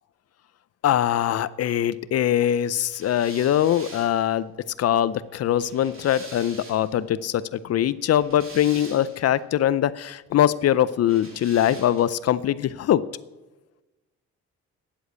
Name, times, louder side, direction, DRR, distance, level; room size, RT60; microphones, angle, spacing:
voice 1, 0.8-4.5 4.8-13.0, left 11 dB, 55° left, 17 dB, 0.5 m, -22 dB
sound 1, 2.9-7.0 7.9-9.4 11.0-12.3, right 3 dB, 45° right, 3.3 m, -45 dB
10.0 x 7.8 x 8.1 m, 1.1 s
cardioid pair, 90°, 30 cm